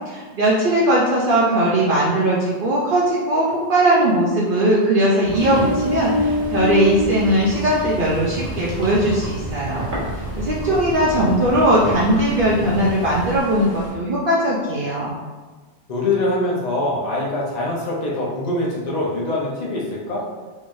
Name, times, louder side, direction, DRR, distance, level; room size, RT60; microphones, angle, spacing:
voice 1, 0.0-9.9 10.1-15.2, right 1 dB, 60° right, -5 dB, 0.7 m, -19 dB
sound 1, 5.2-13.4, right 2 dB, 80° right, 1.3 m, -32 dB
Ocean, 5.3-13.9, left 1 dB, 80° left, 1.3 m, -29 dB
voice 2, 10.7-11.3 15.9-20.2, left 2 dB, 40° left, -5 dB, 0.8 m, -24 dB
3.7 x 3.1 x 2.6 m, 1.3 s
omnidirectional pair, 1.1 m